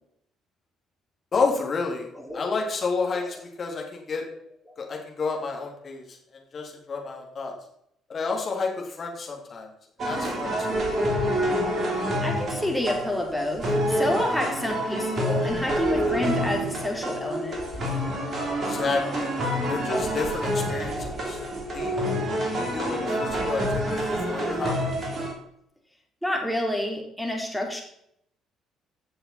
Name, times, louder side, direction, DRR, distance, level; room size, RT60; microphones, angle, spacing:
voice 1, 1.3-2.1 2.3-4.2 4.8-6.2 6.5-7.5 8.1-9.7 10.0-10.9 18.7-19.3 19.7-21.4 21.7-21.9 22.4-24.9, left 4 dB, 40° left, 0 dB, 3.2 m, -30 dB
sound 1, 10.0-25.3, equal, 40° right, 3.3 m, -27 dB
voice 2, 12.2-17.6 26.2-27.8, left 1 dB, ahead, 0 dB, 3.5 m, -28 dB
15.0 x 6.8 x 4.3 m, 0.73 s
figure-of-eight pair, 50°, 0 cm